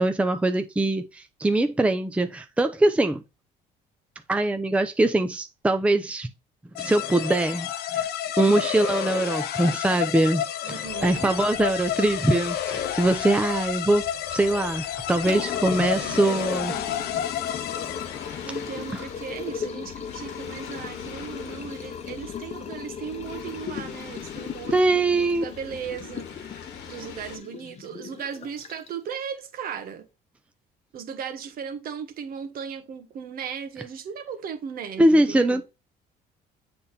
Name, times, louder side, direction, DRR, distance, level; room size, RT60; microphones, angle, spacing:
voice 1, 0.0-3.2 4.3-6.3 6.8-8.1 8.4-16.7 18.9-19.0 24.7-25.4 35.0-35.6, right 2 dB, 5° right, 0.6 m, -23 dB
sound 1, 6.8-18.4, left 11 dB, 70° left, 0.6 m, -30 dB
voice 2, 10.6-11.4 16.0-17.3 18.0-30.1 30.9-35.6, right 7 dB, 60° right, 1.3 m, -37 dB
sound 2, 10.8-27.4, left 7 dB, 90° left, 1.4 m, -44 dB
Liquid, 15.0-29.1, left 7 dB, 40° left, 0.8 m, -37 dB
7.7 x 3.5 x 4.2 m
cardioid pair, 110°, 17 cm